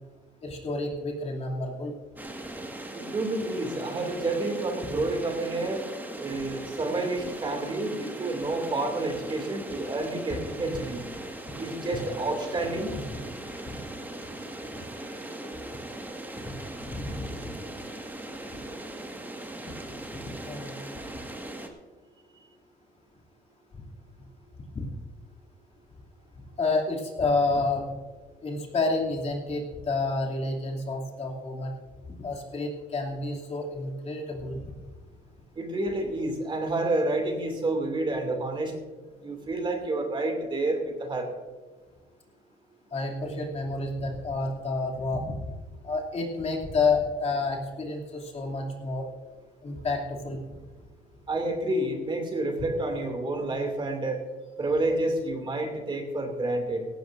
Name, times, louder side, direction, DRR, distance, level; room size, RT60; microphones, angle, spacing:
voice 1, 0.4-2.0 13.7-13.8 16.4-16.5 16.8-17.5 20.5-20.7 24.7-24.9 26.6-27.9 28.4-31.7 32.2-34.7 42.9-45.4 45.8-49.1 49.6-50.4, left 3 dB, 40° left, -1 dB, 2.7 m, -29 dB
sound 1, 2.2-21.7, right 1 dB, 10° right, 1.8 m, -39 dB
voice 2, 2.9-5.8 6.2-11.0 11.6-12.9 35.6-38.7 39.2-41.3 51.3-54.2 54.6-56.9, right 2 dB, 30° right, 3 dB, 2.5 m, -29 dB
17.0 x 15.5 x 2.6 m, 1.3 s
cardioid pair, 110°, 17 cm